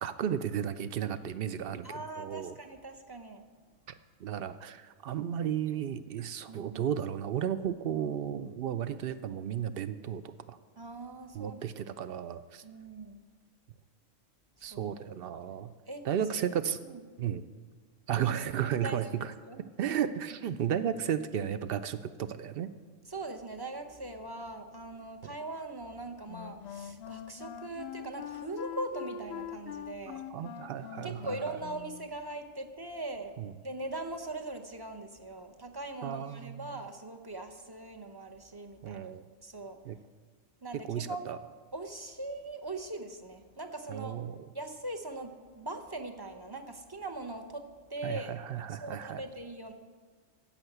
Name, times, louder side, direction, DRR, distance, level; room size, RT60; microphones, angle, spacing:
voice 1, 0.0-2.5 4.2-10.6 11.3-12.6 14.6-15.7 16.0-16.8 17.2-17.5 18.1-19.3 19.8-22.7 30.3-31.6 33.4-33.5 36.0-36.7 38.8-39.2 39.8-40.0 40.9-41.4 43.9-44.5 48.0-49.2, right 9 dB, 60° right, 13 dB, 0.6 m, -34 dB
voice 2, 1.8-3.4 6.5-6.8 10.8-11.6 12.6-13.2 14.6-14.8 15.3-15.4 15.9-16.0 16.3-16.4 16.8-17.0 18.8-20.0 23.1-30.2 31.0-33.4 33.6-39.0 39.4-39.8 40.6-41.3 41.7-44.2 44.5-47.6 47.9-48.3 48.7-49.7, right 2 dB, 25° right, 4 dB, 0.6 m, -41 dB
Wind instrument woodwind instrument, 26.3-32.2, left 8 dB, 65° left, 0.7 m, -43 dB
10.5 x 7.3 x 7.9 m, 1.5 s
omnidirectional pair, 1.4 m